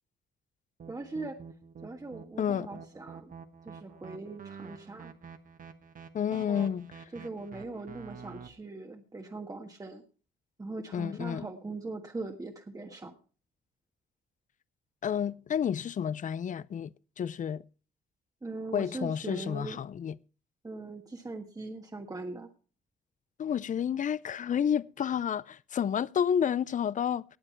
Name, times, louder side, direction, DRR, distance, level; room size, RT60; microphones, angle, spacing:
sound 1, 0.8-8.5, right 6 dB, 45° right, 1.5 m, -48 dB
voice 1, 0.9-1.4 1.8-3.3 3.6-5.1 6.4-6.7 7.1-10.0 10.6-13.1 18.4-19.8 20.6-22.5, right 3 dB, 20° right, 1.4 m, -40 dB
voice 2, 2.4-2.7 6.1-6.9 10.9-11.5 15.0-17.6 18.7-20.2 23.4-27.2, left 8 dB, 40° left, 0.5 m, -30 dB
19.0 x 7.6 x 4.4 m
cardioid pair, 90°, 20 cm